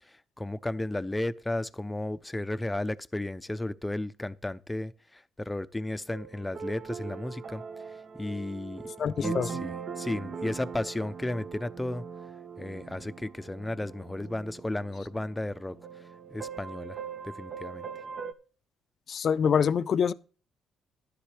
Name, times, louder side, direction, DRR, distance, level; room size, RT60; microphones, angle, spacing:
voice 1, 0.4-7.6 8.2-12.0 12.6-15.8 16.3-17.0 17.2-17.9, left 1 dB, 15° left, 0.6 m, -34 dB
sound 1, 6.1-18.3, right 6 dB, 50° right, 0.7 m, -41 dB
voice 2, 9.0-9.5 19.1-20.1, left 7 dB, 55° left, 0.5 m, -25 dB
11.5 x 10.0 x 3.3 m
cardioid pair, 90°, 0 cm